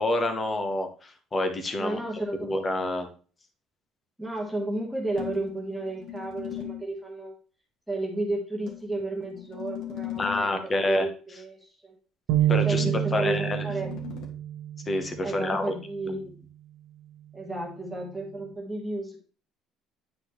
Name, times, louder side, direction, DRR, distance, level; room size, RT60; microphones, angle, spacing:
voice 1, 0.0-2.0 2.4-3.1 10.2-11.1 12.5-12.8 13.1-13.7 14.9-15.7, left 2 dB, 20° left, 7 dB, 1.0 m, -27 dB
voice 2, 1.8-2.5 4.2-7.3 7.9-11.9 12.6-13.9 15.2-16.3 17.3-19.2, right 2 dB, 5° right, -2 dB, 1.4 m, -33 dB
sound 1, 5.2-6.9 8.7-10.6 12.8-14.3, left 12 dB, 65° left, 1.9 m, -39 dB
sound 2, 12.3-15.8, right 12 dB, 80° right, 0.8 m, -28 dB
9.9 x 4.1 x 3.1 m, 0.40 s
cardioid pair, 155°, 0 cm